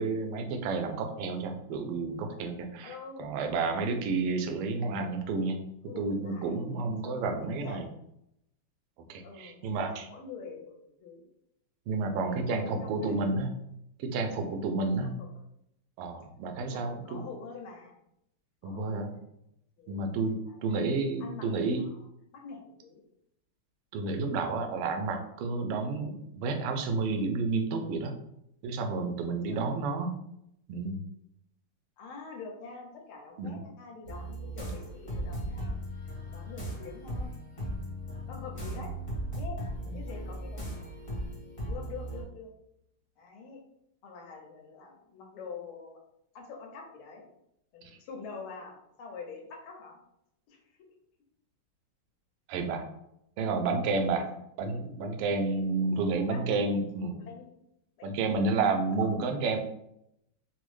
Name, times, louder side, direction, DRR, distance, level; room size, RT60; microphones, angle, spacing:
voice 1, 0.0-5.6 6.0-7.9 9.1-10.1 11.9-13.5 14.0-15.2 16.0-17.2 18.6-19.1 19.9-20.3 20.6-21.8 23.9-28.1 28.6-30.1 30.7-31.0 33.4-33.6 39.9-40.0 52.5-52.8 53.4-54.2 54.6-57.2 58.0-59.6, right 3 dB, 85° right, 5 dB, 1.5 m, -30 dB
voice 2, 2.8-4.0 5.9-6.6 7.0-7.8 9.2-10.7 11.0-11.3 12.2-13.2 15.0-15.3 16.7-18.0 18.6-19.4 19.8-20.1 20.5-21.5 21.8-23.0 24.4-24.5 29.5-29.8 32.0-37.3 38.3-38.9 39.4-39.6 39.9-40.8 41.7-42.5 43.2-43.6 44.0-46.0 46.3-47.3 47.7-50.0 50.5-50.6 53.9-54.1 55.0-55.1 56.1-56.4 57.2-57.5 58.0-58.5 59.0-59.5, left 5 dB, 75° left, 1 dB, 1.5 m, -46 dB
sound 1, 34.1-42.2, right 1 dB, 35° left, 0.5 m, -37 dB
4.1 x 2.0 x 3.1 m, 0.79 s
omnidirectional pair, 2.4 m